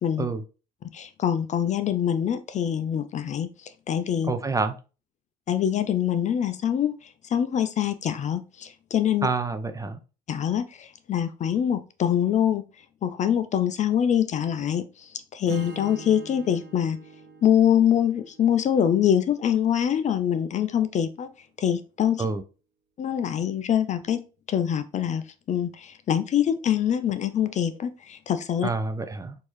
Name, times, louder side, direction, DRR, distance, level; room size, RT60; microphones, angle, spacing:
voice 1, 0.8-4.3 5.5-9.3 10.3-12.6 13.0-17.0 17.4-21.3 21.6-22.3 23.0-24.2 24.5-28.7, left 9 dB, 35° left, 0.4 m, -24 dB
voice 2, 4.2-4.7 9.2-10.0 22.2-22.4 28.6-29.4, right 4 dB, 15° right, 0.5 m, -27 dB
Strum, 15.5-19.6, right 3 dB, 60° right, 0.9 m, -44 dB
4.4 x 2.7 x 3.0 m
hypercardioid pair, 70°, 20 cm